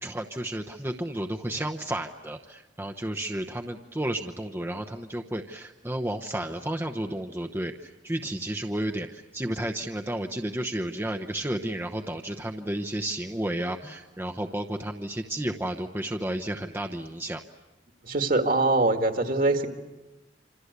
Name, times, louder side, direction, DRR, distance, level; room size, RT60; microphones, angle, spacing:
voice 1, 0.0-17.4, right 1 dB, 15° right, 3 dB, 0.9 m, -32 dB
voice 2, 18.0-19.7, right 2 dB, 50° right, 6 dB, 2.1 m, -23 dB
27.0 x 26.5 x 8.2 m, 1.1 s
head